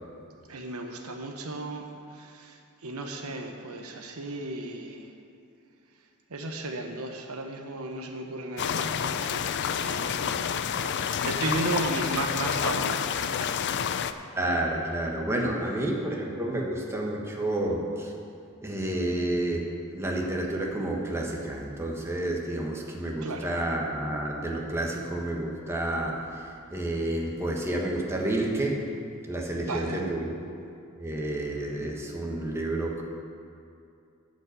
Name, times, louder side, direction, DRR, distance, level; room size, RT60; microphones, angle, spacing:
voice 1, 0.5-5.1 6.3-13.5 13.8-14.1 23.2-23.5 29.6-30.1, right 2 dB, 75° right, 3 dB, 1.0 m, -35 dB
sound 1, 8.6-14.1, left 8 dB, 55° left, 0.4 m, -29 dB
voice 2, 14.3-18.1 18.6-28.9 29.3-30.3 31.0-33.0, right 1 dB, 10° right, -1 dB, 1.2 m, -30 dB
11.0 x 5.3 x 8.1 m, 2.5 s
head